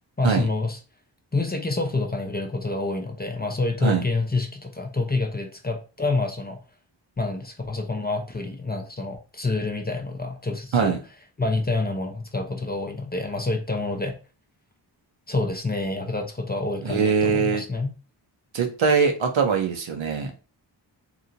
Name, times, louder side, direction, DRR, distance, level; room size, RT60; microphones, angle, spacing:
voice 1, 0.2-0.8 1.3-6.6 7.2-10.9 11.4-14.2 15.3-17.9, left 3 dB, 20° left, 4 dB, 0.4 m, -27 dB
voice 2, 16.8-17.6 18.5-20.4, right 5 dB, 80° right, 3 dB, 0.7 m, -22 dB
2.9 x 2.7 x 2.5 m, 0.34 s
wide cardioid pair, 95°, 45 cm